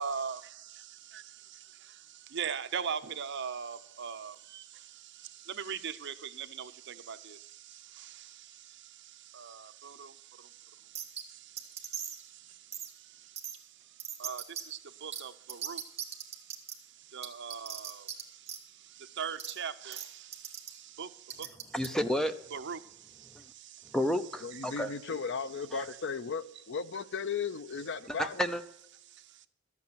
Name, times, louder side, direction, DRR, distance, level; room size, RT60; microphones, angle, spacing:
voice 1, 0.0-0.4 0.8-1.2 1.6-13.4 14.2-16.5 17.1-21.5 22.5-23.9, right 7 dB, 60° right, 0.8 m, -41 dB
sound 1, 10.9-11.2 11.6-12.2 12.7-12.9 13.4-13.6 14.0-14.6 15.1-15.2 15.5-16.7 17.2-18.2 18.5-18.6 19.4-19.5 19.9-20.1 20.3-20.7 21.3-21.9, right 9 dB, 30° right, 1.7 m, -38 dB
voice 2, 21.7-22.3 23.9-24.9 25.7-25.8 28.2-28.6, equal, 5° left, 0.7 m, -30 dB
voice 3, 24.4-28.4, left 5 dB, 65° left, 0.5 m, -36 dB
13.0 x 8.4 x 6.8 m
head